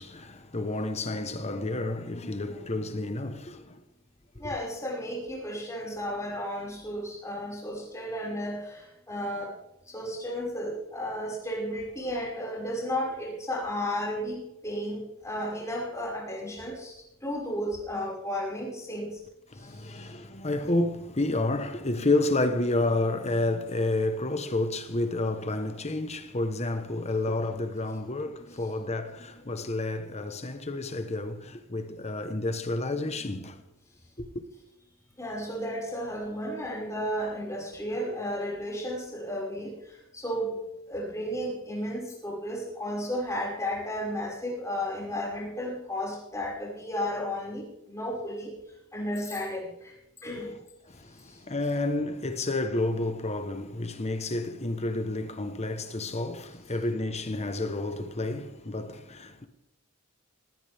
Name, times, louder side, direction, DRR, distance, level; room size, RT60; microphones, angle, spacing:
voice 1, 0.0-3.8 19.5-33.6 34.2-34.4 50.9-59.5, left 2 dB, 30° left, 1.1 m, -30 dB
voice 2, 4.4-9.5 9.9-19.2 19.5-20.1 35.2-40.6 40.9-48.5 48.9-50.0 50.2-50.5 51.1-51.4, equal, 15° left, 5.6 m, -33 dB
19.0 x 17.0 x 3.5 m
head